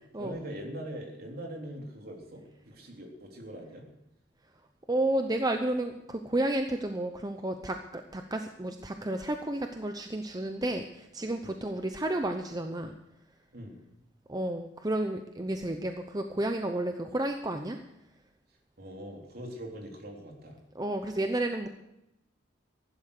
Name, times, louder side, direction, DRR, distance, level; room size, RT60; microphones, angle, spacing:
voice 1, 0.2-3.9 11.4-11.6 13.5-13.8 18.8-20.6, right 1 dB, 55° right, 1 dB, 3.5 m, -42 dB
voice 2, 4.9-13.0 14.3-17.8 20.7-21.7, right 1 dB, 20° right, 6 dB, 0.7 m, -31 dB
15.0 x 11.5 x 6.6 m, 0.88 s
head